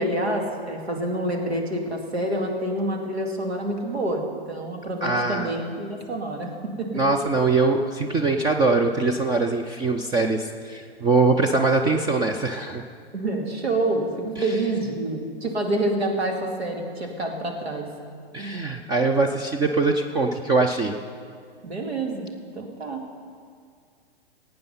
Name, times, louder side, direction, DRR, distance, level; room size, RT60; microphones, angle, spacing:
voice 1, 0.0-6.5 6.8-6.9 13.1-17.9 21.6-22.3 22.5-23.0, right 1 dB, 85° right, 2 dB, 2.5 m, -27 dB
voice 2, 5.0-5.6 6.9-12.8 14.4-14.5 18.3-21.0, right 3 dB, 15° right, 4 dB, 0.4 m, -22 dB
17.0 x 8.9 x 5.6 m, 2.1 s
hypercardioid pair, 120°, 31 cm